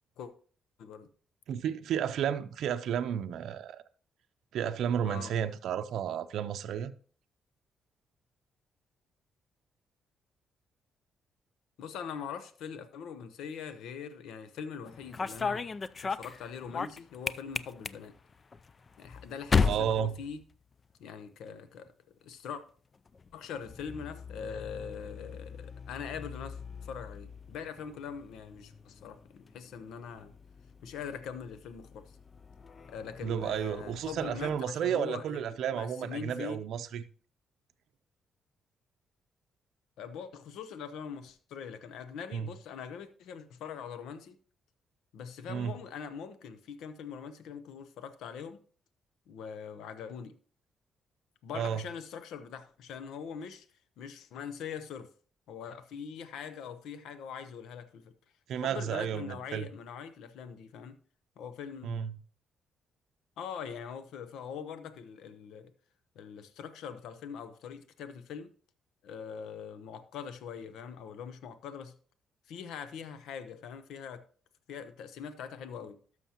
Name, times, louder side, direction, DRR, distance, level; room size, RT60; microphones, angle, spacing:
voice 1, 1.5-3.8 4.5-6.9 19.6-20.2 33.2-37.1 42.3-42.5 45.5-45.8 51.5-51.8 58.5-59.7 61.8-62.2, right 9 dB, 75° right, 0.5 m, -32 dB
voice 2, 11.8-15.7 16.0-18.1 19.0-20.4 21.0-21.9 22.2-22.6 23.3-30.3 30.8-32.1 32.9-36.6 40.0-44.4 45.1-48.6 49.3-50.3 51.4-53.7 54.0-55.1 55.5-58.1 58.5-61.0 61.4-62.0 63.4-65.7 66.2-68.5 69.0-72.0 72.5-74.2 74.7-76.0, left 7 dB, 85° left, 0.7 m, -42 dB
sound 1, 14.8-21.0 21.3-21.9 22.9-34.6, left 5 dB, 35° left, 0.4 m, -37 dB
12.5 x 6.3 x 2.9 m
cardioid pair, 90°, 0 cm